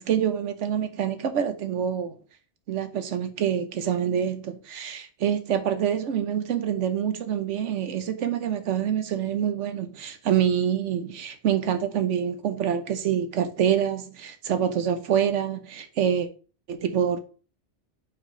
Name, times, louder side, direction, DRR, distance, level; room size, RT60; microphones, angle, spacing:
voice 1, 0.0-2.1 2.7-16.3 16.7-17.2, right 9 dB, 80° right, 1.2 m, -26 dB
4.9 x 4.7 x 4.9 m
omnidirectional pair, 1.2 m